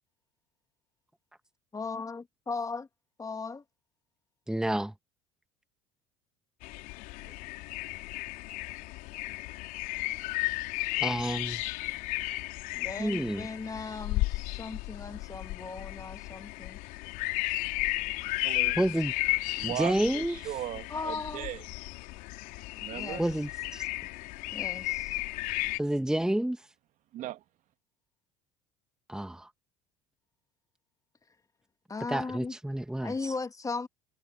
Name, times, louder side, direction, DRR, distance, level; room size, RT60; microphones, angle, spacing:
voice 1, 1.7-2.9 3.2-3.6 12.7-16.8 20.9-21.5 22.9-23.3 24.5-25.2 31.9-32.6 33.0-33.9, left 4 dB, 20° left, 2.4 m, -37 dB
voice 2, 4.5-4.9 11.0-11.6 13.0-13.5 18.8-19.1 19.6-20.4 23.2-23.9 25.8-26.6 29.1-29.5 32.1-33.3, right 1 dB, 5° right, 1.6 m, -29 dB
sound 1, 6.6-25.8, left 22 dB, 60° left, 4.0 m, -34 dB
voice 3, 18.4-18.8 19.6-21.6 22.8-23.2 27.1-27.4, right 14 dB, 50° right, 1.9 m, -38 dB
hypercardioid pair, 65°, 16 cm